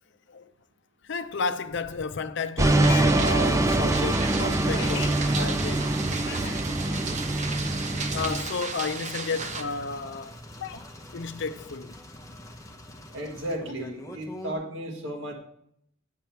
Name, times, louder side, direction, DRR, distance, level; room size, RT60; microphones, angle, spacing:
voice 1, 1.0-5.9 6.3-6.7 7.5-7.7 8.1-10.8 11.1-11.9, left 4 dB, 65° left, 0.6 m, -32 dB
sound 1, 2.6-8.4, right 2 dB, 15° right, 0.5 m, -24 dB
sound 2, 2.6-9.6, right 4 dB, 40° right, 0.9 m, -34 dB
sound 3, 9.3-14.5, left 1 dB, 15° left, 0.9 m, -44 dB
voice 2, 13.1-15.3, right 1 dB, 70° right, 1.6 m, -34 dB
9.3 x 7.0 x 4.5 m
head